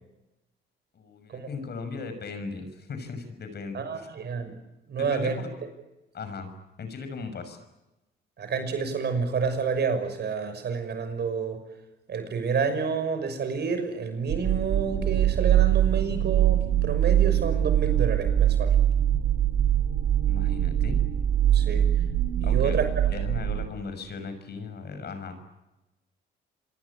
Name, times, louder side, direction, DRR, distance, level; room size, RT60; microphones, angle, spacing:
voice 1, 0.9-4.1 5.0-5.5 6.1-6.5 6.8-7.6 20.3-21.0 22.4-22.8 23.1-25.4, left 4 dB, 55° left, 9 dB, 6.3 m, -37 dB
voice 2, 3.7-4.6 4.9-5.4 8.4-11.6 12.1-18.8 21.5-21.9 22.4-22.9, right 5 dB, 55° right, 9 dB, 6.2 m, -29 dB
sound 1, 14.3-23.7, right 11 dB, 80° right, 2.7 m, -23 dB
27.0 x 24.0 x 8.7 m, 1.0 s
cardioid pair, 90°, 20 cm